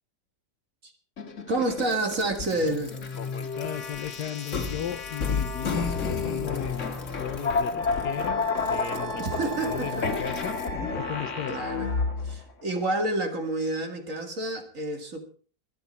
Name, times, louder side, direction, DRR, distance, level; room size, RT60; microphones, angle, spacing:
sound 1, 1.2-12.4, left 4 dB, 45° left, 1.9 m, -30 dB
voice 1, 1.5-3.0 9.2-10.1 11.5-11.9 12.2-15.2, right 2 dB, 45° right, 5 dB, 2.4 m, -29 dB
voice 2, 3.2-10.6 11.0-11.6, left 10 dB, 70° left, 10 dB, 1.3 m, -36 dB
Wind instrument woodwind instrument, 7.8-12.1, right 3 dB, 20° right, 4.0 m, -38 dB
24.0 x 8.6 x 4.2 m, 0.41 s
omnidirectional pair, 1.9 m